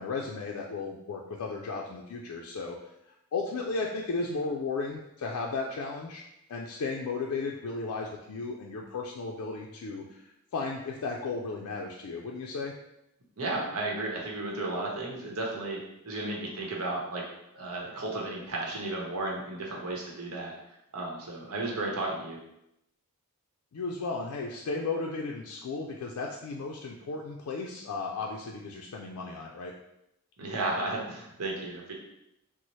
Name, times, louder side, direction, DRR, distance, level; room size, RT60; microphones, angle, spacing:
voice 1, 0.0-2.8 3.3-6.2 6.5-12.7 23.7-29.7, left 3 dB, 90° left, 0 dB, 0.4 m, -35 dB
voice 2, 13.4-17.2 17.5-20.5 20.9-22.4 30.4-31.9, right 2 dB, 85° right, -2 dB, 0.8 m, -33 dB
4.0 x 2.0 x 3.0 m, 0.85 s
head